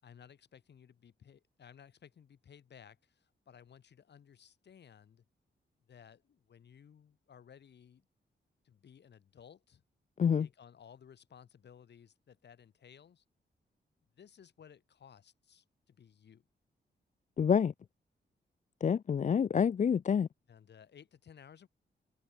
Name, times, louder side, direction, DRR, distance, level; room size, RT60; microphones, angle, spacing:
voice 1, 0.0-5.2 5.9-8.1 8.6-9.8 10.2-13.2 14.2-16.5 20.5-21.7, left 8 dB, 65° left, 5.4 m, -58 dB
voice 2, 17.4-17.7 18.8-20.3, left 7 dB, 40° left, 0.6 m, -27 dB
open air
wide cardioid pair, 155°, 19 cm